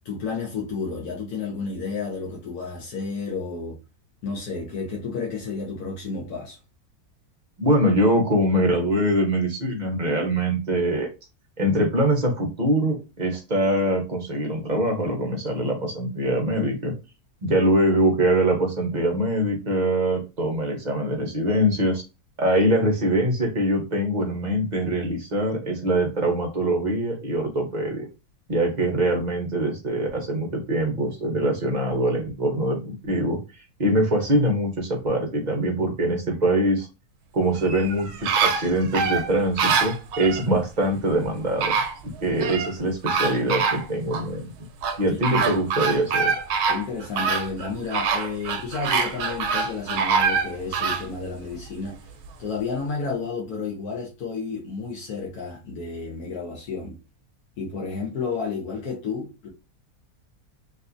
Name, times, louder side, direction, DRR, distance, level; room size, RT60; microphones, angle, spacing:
voice 1, 0.0-3.8 4.2-6.6 45.1-45.5 46.7-52.1 52.4-57.0 57.6-59.5, left 4 dB, 75° left, 1.3 m, -31 dB
voice 2, 7.6-11.1 11.6-16.9 17.4-22.0 22.4-28.1 28.5-33.4 33.8-36.9 37.3-41.8 42.2-44.5 45.0-46.3, right 1 dB, 40° right, 0.7 m, -23 dB
sound 1, 37.6-40.5 41.2-41.3 41.6-42.7 43.1-44.3 44.8-51.1 51.5-51.6, right 5 dB, 90° right, 1.1 m, -25 dB
3.2 x 2.7 x 2.5 m
omnidirectional pair, 1.6 m